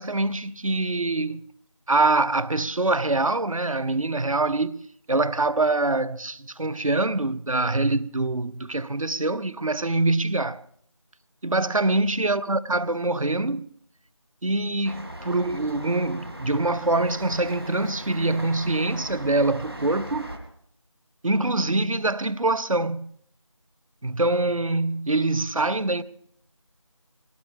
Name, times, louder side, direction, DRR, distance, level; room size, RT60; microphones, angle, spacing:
voice 1, 0.0-1.4 1.9-4.8 5.1-10.6 11.4-13.7 14.4-20.3 21.2-23.1 24.0-26.0, right 2 dB, 85° right, 0.8 m, -24 dB
sound 1, 14.8-20.4, right 1 dB, 50° right, 2.7 m, -38 dB
22.0 x 17.5 x 3.5 m
figure-of-eight pair, 180°, 17 cm